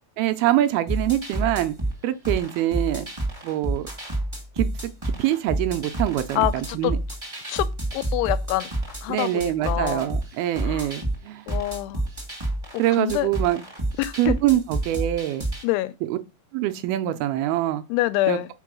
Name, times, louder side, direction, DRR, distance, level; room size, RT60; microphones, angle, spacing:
voice 1, 0.2-1.8 2.0-3.1 3.4-3.9 4.6-4.9 5.2-7.0 9.1-11.5 12.8-13.6 14.2-15.5 16.0-16.2 16.5-17.8 18.3-18.4, right 13 dB, 80° right, 2.3 m, -24 dB
sound 1, 0.9-15.6, right 1 dB, 35° right, 0.4 m, -29 dB
voice 2, 6.3-6.9 7.5-8.7 9.0-10.1 10.6-10.9 11.5-12.0 13.0-13.3 14.0-14.4 15.6-15.9 17.9-18.5, left 17 dB, 90° left, 2.6 m, -26 dB
5.8 x 4.6 x 6.1 m
omnidirectional pair, 4.6 m